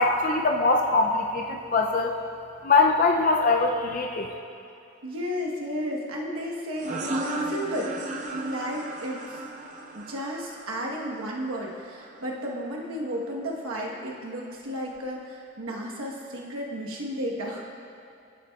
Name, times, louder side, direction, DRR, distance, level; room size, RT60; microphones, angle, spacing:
voice 1, 0.0-2.2 2.6-4.3, left 3 dB, 35° left, 2 dB, 0.4 m, -22 dB
voice 2, 5.0-8.0 8.3-9.4 9.9-17.7, equal, 80° right, -2 dB, 1.1 m, -33 dB
sound 1, 6.8-12.1, right 1 dB, 35° right, 0.5 m, -35 dB
13.5 x 7.4 x 2.3 m, 2.6 s
head